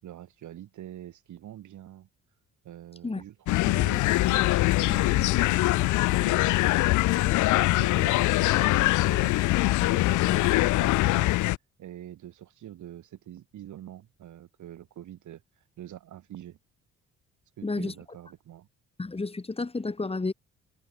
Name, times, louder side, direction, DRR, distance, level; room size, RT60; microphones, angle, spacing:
voice 1, 0.0-2.1 2.6-9.4 9.8-11.3 11.8-15.4 15.8-16.6 17.6-18.7, right 12 dB, 75° right, 7.2 m, -45 dB
sound 1, 3.5-11.6, left 19 dB, 75° left, 0.5 m, -23 dB
voice 2, 17.6-17.9 19.0-20.3, left 3 dB, 20° left, 2.5 m, -31 dB
cardioid pair, 90°, 30 cm